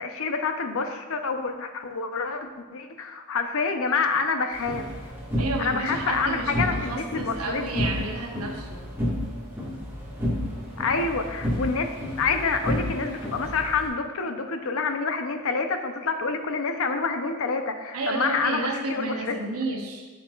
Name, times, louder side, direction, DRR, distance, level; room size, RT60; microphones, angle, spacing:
voice 1, 0.0-4.9 5.6-7.9 10.8-19.3, left 4 dB, 65° left, 6 dB, 0.6 m, -27 dB
sound 1, 4.5-13.9, equal, 10° right, 1.5 m, -31 dB
voice 2, 5.4-8.8 17.9-20.1, right 2 dB, 80° right, 2 dB, 1.0 m, -31 dB
8.4 x 6.4 x 2.4 m, 1.3 s
head